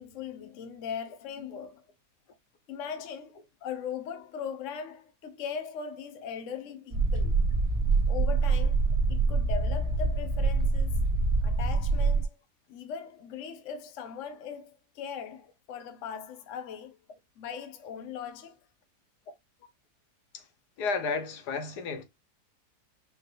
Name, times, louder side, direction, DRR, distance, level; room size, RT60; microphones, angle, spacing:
voice 1, 0.0-1.8 2.7-7.4 8.1-8.8 9.1-11.0 11.4-12.4 12.7-17.0 17.4-18.6, left 7 dB, 55° left, 1.1 m, -39 dB
sound 1, 6.9-12.2, right 3 dB, 45° right, 1.9 m, -25 dB
voice 2, 20.8-22.0, left 4 dB, 80° left, 1.5 m, -32 dB
5.4 x 3.2 x 2.5 m
omnidirectional pair, 1.7 m